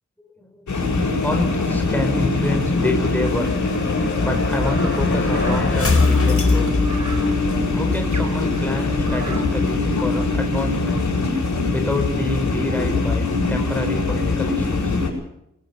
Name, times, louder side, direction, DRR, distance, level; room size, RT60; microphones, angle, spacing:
voice 1, 0.2-3.5 4.2-6.7 7.7-11.1 11.7-15.0, left 1 dB, 5° left, 4 dB, 4.6 m, -28 dB
sound 1, 0.7-15.1, left 3 dB, 75° left, 7.8 m, -22 dB
sound 2, 0.9-7.7, left 3 dB, 50° left, 4.6 m, -25 dB
sound 3, 4.6-9.7, right 4 dB, 75° right, 4.9 m, -37 dB
22.0 x 18.5 x 7.0 m, 0.80 s
wide cardioid pair, 80°, 30 cm